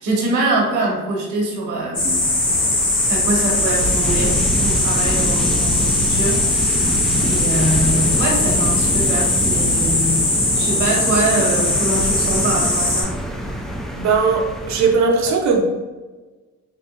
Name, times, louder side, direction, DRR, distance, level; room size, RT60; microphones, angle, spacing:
voice 1, 0.0-2.3 3.1-6.9 7.2-10.2 10.5-13.6, right 2 dB, 80° right, -2 dB, 1.2 m, -24 dB
sound 1, 1.9-13.0, left 2 dB, 30° left, 1.4 m, -20 dB
sound 2, 2.0-15.0, equal, ahead, 0.3 m, -25 dB
voice 2, 13.9-15.6, right 4 dB, 65° right, 2 dB, 0.7 m, -18 dB
4.0 x 2.7 x 2.4 m, 1.2 s
cardioid pair, 90°, 30 cm